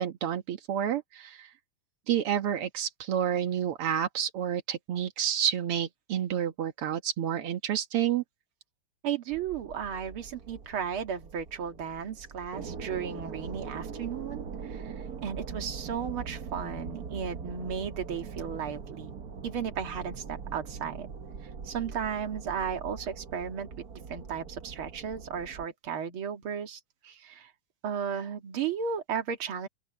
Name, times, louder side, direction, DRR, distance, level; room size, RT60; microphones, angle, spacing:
voice 1, 0.0-1.5 2.1-8.2, right 9 dB, 90° right, 2.3 m, -29 dB
voice 2, 9.0-19.1 19.4-21.1 21.6-23.7 24.1-27.5 27.8-29.7, right 7 dB, 70° right, 2.7 m, -35 dB
sound 1, 9.3-25.7, right 6 dB, 45° right, 1.6 m, -42 dB
open air
omnidirectional pair, 2.4 m